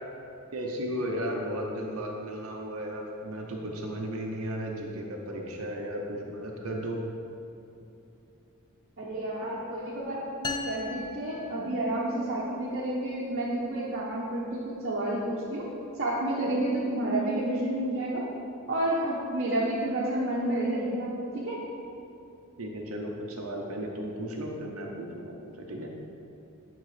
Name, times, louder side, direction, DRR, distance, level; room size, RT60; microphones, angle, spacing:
voice 1, 0.5-7.0 22.6-25.9, equal, 70° right, 0 dB, 0.9 m, -35 dB
voice 2, 9.0-15.7 16.0-18.2 18.7-21.6, right 1 dB, 50° right, -6 dB, 1.1 m, -30 dB
sound 1, 10.4-12.2, left 3 dB, 20° left, 0.5 m, -37 dB
11.0 x 3.9 x 5.0 m, 2.8 s
head